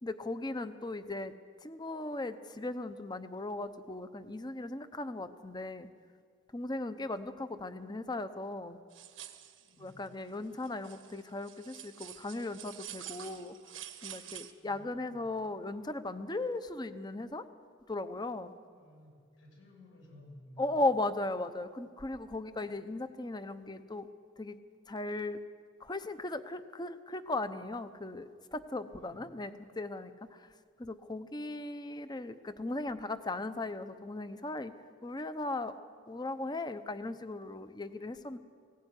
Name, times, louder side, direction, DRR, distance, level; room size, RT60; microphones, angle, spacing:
voice 1, 0.0-1.3 1.6-5.9 6.5-8.8 9.8-13.5 14.0-17.4 17.9-18.5 20.6-24.1 24.4-24.6 24.9-25.4 25.8-30.5 30.8-34.7 35.0-35.7 36.1-38.4, left 2 dB, 20° left, 11 dB, 0.8 m, -37 dB
sound 1, 8.9-9.7 10.1-10.2 10.6-14.5, right 11 dB, 85° right, 1.4 m, -47 dB
voice 2, 9.6-10.0 14.6-15.2 18.7-20.8 28.9-29.3, left 1 dB, 80° left, -1 dB, 7.7 m, -56 dB
19.0 x 16.5 x 9.9 m, 2.1 s
head